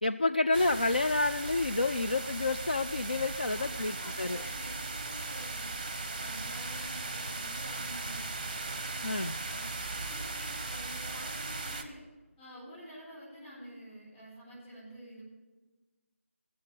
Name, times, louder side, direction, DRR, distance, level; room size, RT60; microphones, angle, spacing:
voice 1, 0.0-4.4 9.0-9.4, left 2 dB, 40° left, 9 dB, 0.3 m, -29 dB
sound 1, 0.5-11.8, right 3 dB, 15° right, 0.9 m, -38 dB
voice 2, 3.5-5.7 6.1-8.9 9.4-9.6 9.9-12.0 12.4-15.2, equal, 10° left, -12 dB, 5.7 m, -49 dB
16.5 x 7.5 x 8.2 m, 1.2 s
figure-of-eight pair, 180°, 7 cm